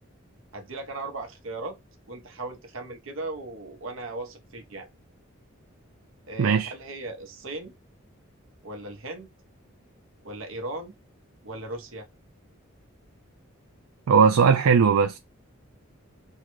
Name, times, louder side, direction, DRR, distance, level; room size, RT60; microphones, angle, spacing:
voice 1, 0.5-1.8 2.1-4.9 6.3-7.7 8.6-9.3 10.2-10.9 11.4-12.1, right 2 dB, 70° right, 0.9 m, -37 dB
voice 2, 6.4-6.7 14.1-15.2, right 6 dB, 90° right, 0.4 m, -18 dB
3.6 x 2.2 x 3.0 m
head